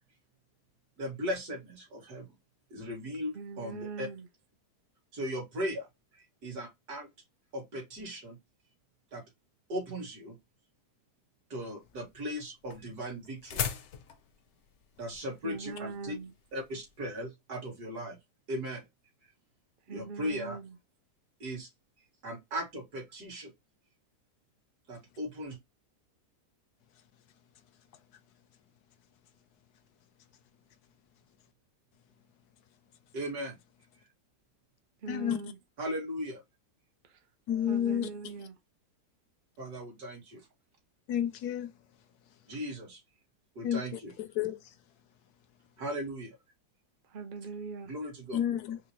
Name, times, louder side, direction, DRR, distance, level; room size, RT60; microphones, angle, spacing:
voice 1, 1.0-2.3 2.7-4.1 5.1-5.9 6.1-7.1 7.5-8.4 9.1-9.2 9.7-10.4 11.5-13.6 15.0-16.2 16.5-18.2 18.5-18.9 19.2-19.3 19.9-20.6 21.4-21.7 22.2-23.5 24.9-25.6 33.1-33.6 35.8-36.4 39.6-40.5 42.5-43.0 43.6-44.1 45.8-46.4 47.9-48.4, equal, 70° right, 2.5 m, -37 dB
voice 2, 3.3-4.3 15.4-16.3 19.9-20.7 35.0-35.6 37.1-37.2 37.7-38.5 47.1-47.9, right 4 dB, 50° right, 0.6 m, -41 dB
sound 1, 11.8-17.0, left 8 dB, 60° left, 0.8 m, -40 dB
voice 3, 35.1-35.4 37.5-38.1 41.1-41.7 43.6-44.6 48.3-48.8, left 10 dB, 75° left, 1.1 m, -31 dB
4.9 x 2.1 x 2.9 m
omnidirectional pair, 1.7 m